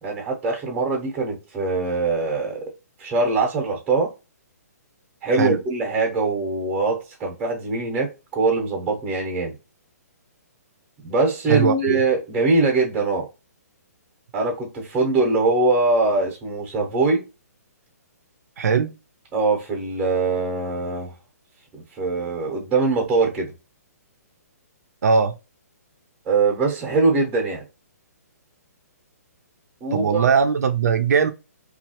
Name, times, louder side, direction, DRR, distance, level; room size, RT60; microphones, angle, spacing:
voice 1, 0.0-2.7 3.0-4.1 5.2-9.5 11.0-13.3 14.3-17.2 19.3-21.1 21.7-23.5 26.3-27.6 29.8-30.3, right 3 dB, 15° right, 0.8 m, -22 dB
voice 2, 11.5-12.0 18.6-18.9 25.0-25.3 29.9-31.3, right 6 dB, 70° right, 0.5 m, -20 dB
3.0 x 2.4 x 2.8 m
hypercardioid pair, 160°, 9 cm